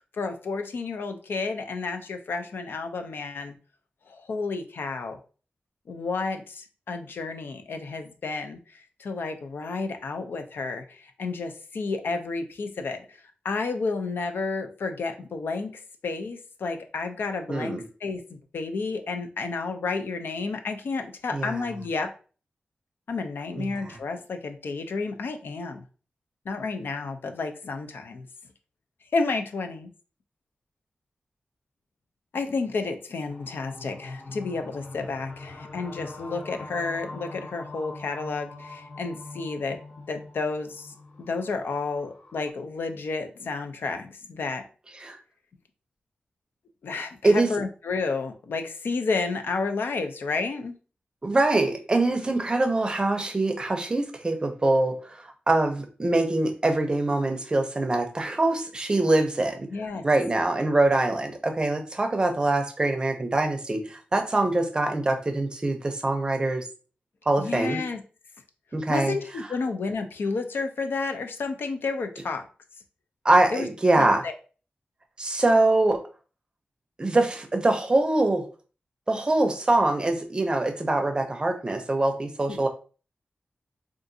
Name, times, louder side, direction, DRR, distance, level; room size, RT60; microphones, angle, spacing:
voice 1, 0.1-3.5 4.1-5.2 5.9-13.2 13.4-15.7 16.0-22.1 23.1-25.8 26.5-28.3 29.1-29.9 32.3-39.8 40.1-44.6 46.8-50.8 59.7-60.0 67.4-68.0 68.9-72.4 73.5-73.7 74.0-74.3 82.5-82.6, left 4 dB, 85° left, 6 dB, 0.4 m, -31 dB
voice 2, 17.5-17.8 21.3-21.7 23.6-24.0 45.0-45.2 47.2-47.5 51.2-59.7 60.0-66.6 67.3-67.8 68.7-69.2 73.2-74.2 75.2-76.0 77.0-78.4 79.1-82.7, right 2 dB, 25° right, 5 dB, 0.5 m, -24 dB
sound 1, 33.3-42.5, left 2 dB, 65° left, 0.9 m, -43 dB
3.7 x 2.4 x 2.6 m, 0.37 s
wide cardioid pair, 150°, 4 cm